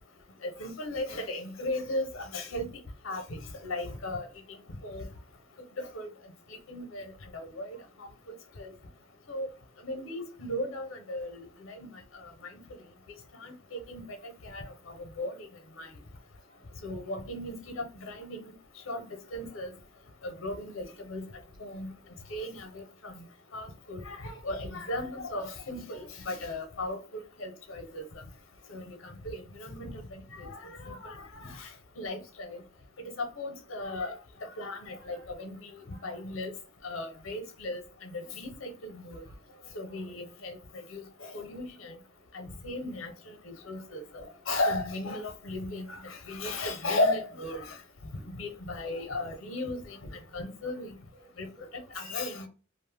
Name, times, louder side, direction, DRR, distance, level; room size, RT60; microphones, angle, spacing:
voice 1, 0.4-2.7 3.0-4.3 4.8-5.1 5.8-6.1 6.7-7.0 7.3-7.8 8.6-8.7 9.3-9.5 9.8-11.9 13.4-15.4 15.8-15.9 16.8-18.5 18.9-19.0 19.3-19.7 20.2-21.2 21.6-21.9 22.3-23.1 23.5-28.0 28.7-31.7 32.0-32.6 33.2-34.1 34.4-35.7 36.0-36.5 36.8-39.2 39.7-40.6 40.9-41.9 42.3-47.8 48.4-50.0 50.3-50.9 51.4-51.5 51.9-52.5, left 1 dB, 75° left, 0.8 m, -36 dB
voice 2, 16.4-16.8 23.1-23.2 35.0-35.2 35.9-36.2 39.0-40.2 46.1-46.2 46.4-46.7 51.2-51.3 51.6-52.2, right 2 dB, 45° right, 1.0 m, -57 dB
2.6 x 2.1 x 3.3 m
head